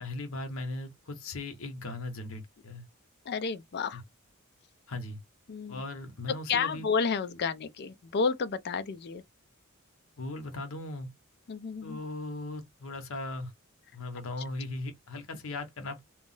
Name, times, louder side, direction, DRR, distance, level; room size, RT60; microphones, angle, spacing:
voice 1, 0.0-2.8 3.9-4.0 4.9-5.2 5.7-6.9 10.2-11.1 11.8-13.5 13.9-16.0, left 2 dB, 70° left, 0.8 m, -38 dB
voice 2, 3.3-4.0 5.5-5.8 6.5-9.2 11.5-12.0, left 5 dB, 50° left, 0.4 m, -31 dB
2.4 x 2.0 x 3.7 m
head